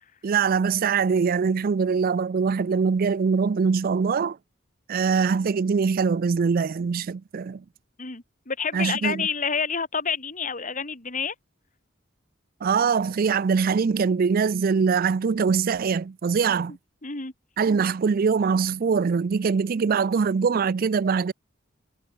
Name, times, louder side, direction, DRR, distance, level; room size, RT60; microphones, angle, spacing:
voice 1, 0.2-4.4 4.9-7.6 8.7-9.3 12.6-16.8 17.6-21.3, right 5 dB, 50° right, 0.4 m, -23 dB
voice 2, 8.0-11.3 17.0-17.3, left 5 dB, 40° left, 2.7 m, -28 dB
head